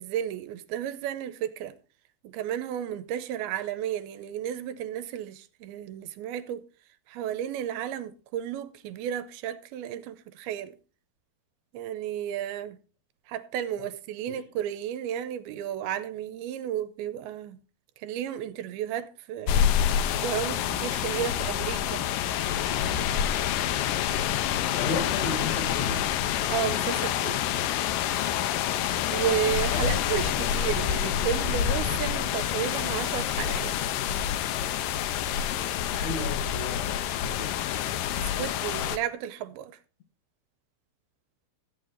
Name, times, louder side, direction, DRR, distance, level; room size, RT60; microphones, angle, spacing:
voice 1, 0.0-1.8 2.2-6.6 7.1-10.8 11.7-12.8 13.3-17.6 18.0-19.7 20.1-22.1 26.5-27.5 28.8-33.8 38.2-39.8, right 10 dB, 80° right, 2.5 m, -33 dB
sound 1, 19.5-39.0, left 10 dB, 80° left, 2.0 m, -27 dB
voice 2, 24.8-26.1 29.7-30.8 35.9-37.6, left 3 dB, 60° left, 2.0 m, -35 dB
14.0 x 8.6 x 3.9 m
omnidirectional pair, 4.5 m